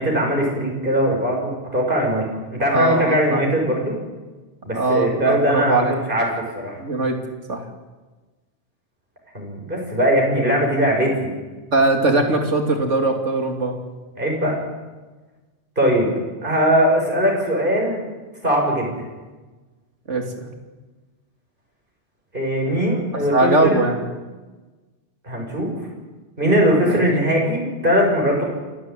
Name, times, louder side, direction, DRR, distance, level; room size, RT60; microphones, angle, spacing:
voice 1, 0.0-2.3 2.5-4.0 4.6-6.8 9.3-11.3 14.2-14.6 15.8-16.1 16.4-18.0 18.4-19.1 22.3-23.8 25.2-25.8 26.4-28.4, equal, 45° right, -1 dB, 6.2 m, -20 dB
voice 2, 2.7-3.4 4.7-5.9 6.8-7.2 7.5-7.6 11.7-13.8 20.1-20.5 23.3-24.0 26.8-27.0, right 2 dB, 90° right, 4 dB, 3.2 m, -20 dB
28.0 x 13.0 x 9.1 m, 1.2 s
omnidirectional pair, 1.2 m